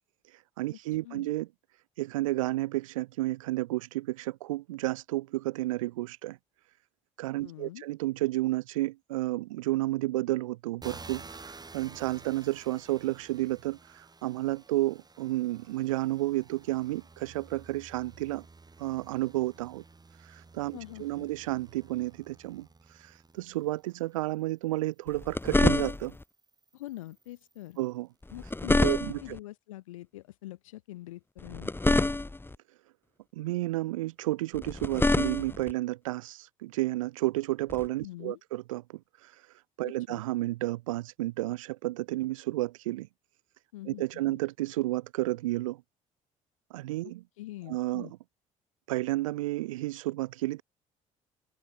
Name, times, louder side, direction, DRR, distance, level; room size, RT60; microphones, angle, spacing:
voice 1, 0.3-1.5 2.0-6.4 7.2-18.5 18.8-19.8 20.2-26.1 27.8-28.1 28.8-29.4 33.3-39.4 39.8-43.1 43.9-45.8 46.7-47.2 47.7-48.2 48.9-50.6, right 17 dB, 85° right, 1.0 m, -31 dB
voice 2, 7.4-7.9 20.7-21.3 26.7-27.8 28.3-31.7 38.0-38.4 39.8-40.2 43.7-44.4 47.4-48.1, left 16 dB, 85° left, 2.9 m, -44 dB
sound 1, 10.8-24.2 24.9-27.8, right 3 dB, 25° right, 3.6 m, -52 dB
sound 2, 25.1-26.2 28.2-29.4 31.4-32.6 34.5-35.7 37.7-37.9, left 2 dB, 15° left, 1.2 m, -27 dB
hypercardioid pair, 55°, 17 cm